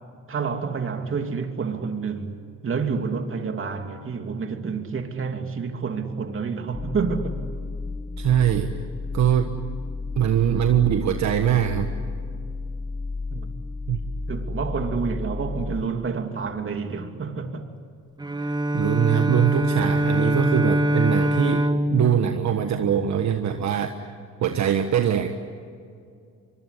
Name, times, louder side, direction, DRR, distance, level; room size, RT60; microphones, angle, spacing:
voice 1, 0.3-7.4 13.3-13.5 14.3-17.7, right 5 dB, 45° right, 2.9 m, -29 dB
sound 1, 6.7-15.8, left 3 dB, 25° left, 1.4 m, -32 dB
voice 2, 8.2-8.8 9.1-9.6 10.2-11.9 13.9-14.0 18.4-24.1 24.4-25.3, right 9 dB, 65° right, 1.5 m, -22 dB
Bowed string instrument, 18.2-23.4, right 1 dB, 15° right, 1.1 m, -24 dB
25.0 x 23.0 x 10.0 m
cardioid pair, 90°, 30 cm